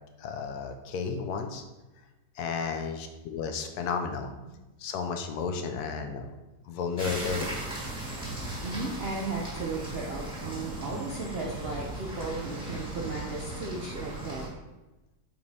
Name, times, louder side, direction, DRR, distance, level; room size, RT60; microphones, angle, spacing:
voice 1, 0.2-1.6 2.4-4.3 4.8-6.3 6.6-7.6, left 5 dB, 70° left, 6 dB, 1.1 m, -33 dB
sound 1, 7.0-14.5, right 1 dB, 5° right, 1.6 m, -37 dB
voice 2, 8.6-14.5, right 3 dB, 70° right, -1 dB, 0.5 m, -35 dB
7.9 x 4.9 x 2.7 m, 1.1 s
omnidirectional pair, 1.9 m